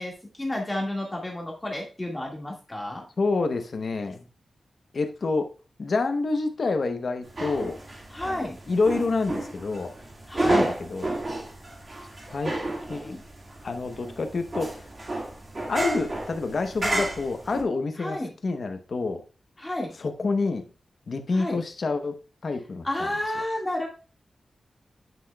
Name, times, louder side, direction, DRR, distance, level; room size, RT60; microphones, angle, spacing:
voice 1, 0.0-3.0 8.1-8.6 10.3-10.7 13.0-13.2 18.0-18.3 19.6-19.9 21.3-21.6 22.8-23.9, left 1 dB, 15° left, -1 dB, 1.7 m, -31 dB
voice 2, 3.2-4.3 4.9-5.5 5.8-7.8 8.7-9.9 10.4-11.2 12.3-12.5 12.9-13.2 13.6-14.9 15.7-19.2 20.0-20.6 21.1-22.2 22.4-23.1, left 3 dB, 50° left, 7 dB, 0.8 m, -28 dB
sound 1, 7.3-17.6, right 2 dB, 35° right, 1.7 m, -31 dB
9.1 x 5.9 x 2.2 m, 0.35 s
wide cardioid pair, 145°, 0 cm